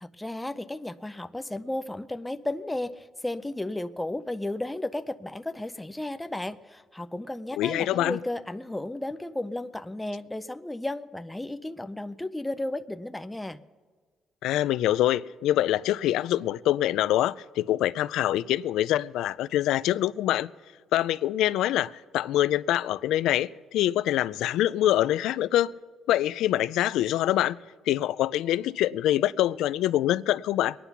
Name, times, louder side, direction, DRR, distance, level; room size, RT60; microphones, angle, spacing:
voice 1, 0.0-13.6, left 1 dB, 5° left, 0.4 m, -34 dB
voice 2, 7.6-8.2 14.4-20.5 20.9-25.7 26.1-27.6 27.9-30.8, left 13 dB, 85° left, 0.3 m, -25 dB
22.5 x 10.0 x 5.8 m
cardioid pair, 140°, 0 cm